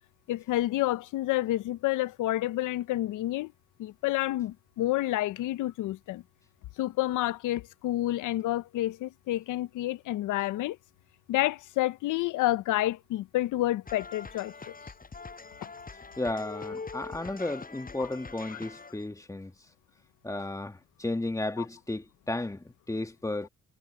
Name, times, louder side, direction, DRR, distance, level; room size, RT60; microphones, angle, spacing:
voice 1, 0.3-3.5 3.8-6.2 6.8-10.8 11.3-14.7 18.0-18.1 18.5-18.6 21.6-21.7, left 15 dB, 85° left, 0.7 m, -29 dB
sound 1, 13.9-19.1, left 4 dB, 30° left, 6.6 m, -43 dB
voice 2, 16.2-19.5 20.2-23.5, left 2 dB, 10° left, 1.8 m, -34 dB
cardioid pair, 90°, 30 cm